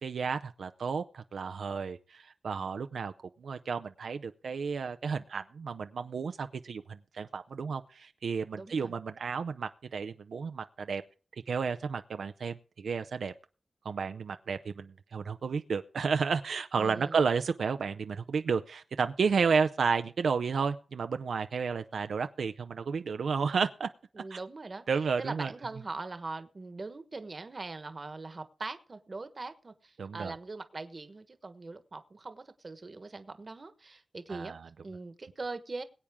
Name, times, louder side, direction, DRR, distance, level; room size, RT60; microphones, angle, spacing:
voice 1, 0.0-11.0 11.3-13.3 13.8-23.9 24.3-24.4 24.9-25.5 30.0-30.3 34.3-34.7, right 5 dB, 75° right, 9 dB, 0.6 m, -32 dB
voice 2, 8.5-8.9 16.8-17.2 24.1-24.8 25.2-35.8, right 3 dB, 30° right, 10 dB, 1.2 m, -41 dB
21.5 x 8.7 x 3.6 m, 0.39 s
wide cardioid pair, 165°, 0 cm